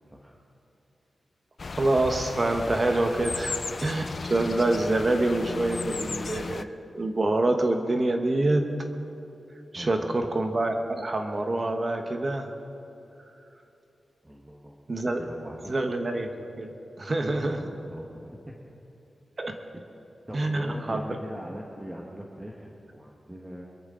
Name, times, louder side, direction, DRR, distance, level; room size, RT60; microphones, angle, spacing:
voice 1, 0.1-0.4 9.7-10.3 14.2-14.8 15.2-15.8 17.4-18.8 20.3-23.6, equal, 10° right, -1 dB, 1.3 m, -41 dB
sound 1, 1.6-6.6, left 4 dB, 50° left, 0.5 m, -35 dB
voice 2, 1.8-6.7 6.9-8.6 9.7-12.5 14.9-15.2 15.7-16.3 16.6-16.7 17.0-17.6 19.4-19.5 20.3-21.0, right 2 dB, 40° right, 4 dB, 1.1 m, -26 dB
23.5 x 14.0 x 3.8 m, 2.9 s
wide cardioid pair, 120°, 0 cm